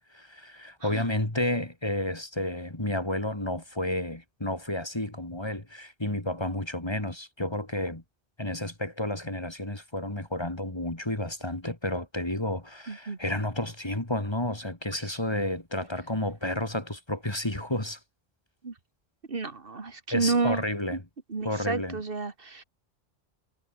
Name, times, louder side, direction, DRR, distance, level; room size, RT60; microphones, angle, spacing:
voice 1, 0.0-8.0 8.4-18.0 20.1-21.0 21.4-22.0, left 1 dB, 25° left, 2.7 m, -31 dB
voice 2, 12.9-13.2 14.9-15.2 18.6-18.7 19.3-20.6 21.3-22.6, right 4 dB, 60° right, 2.0 m, -30 dB
omnidirectional pair, 1.0 m